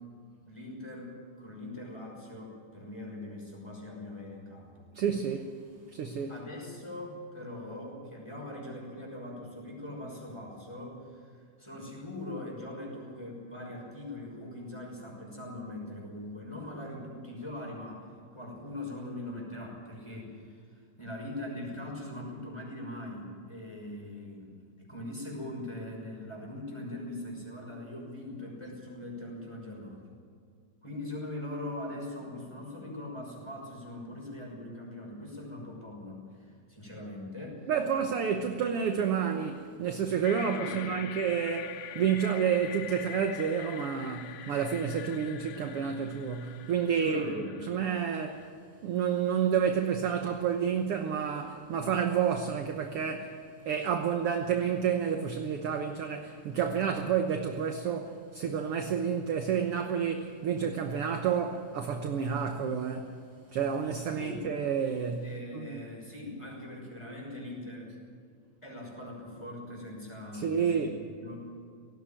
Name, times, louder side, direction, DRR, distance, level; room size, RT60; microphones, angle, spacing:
voice 1, 0.5-4.9 6.3-11.3 11.6-20.6 21.0-30.0 30.8-37.7 40.4-40.9 46.9-47.6 64.1-64.5 65.2-67.9 68.6-71.5, left 1 dB, 10° left, 5.8 m, -41 dB
voice 2, 4.9-5.6 5.9-6.4 37.7-48.4 48.8-53.3 53.6-63.2 63.5-65.3 65.5-65.8 70.3-71.1, right 7 dB, 60° right, 1.6 m, -30 dB
sound 1, 40.2-48.5, left 11 dB, 90° left, 2.4 m, -44 dB
18.5 x 16.0 x 9.1 m
omnidirectional pair, 3.6 m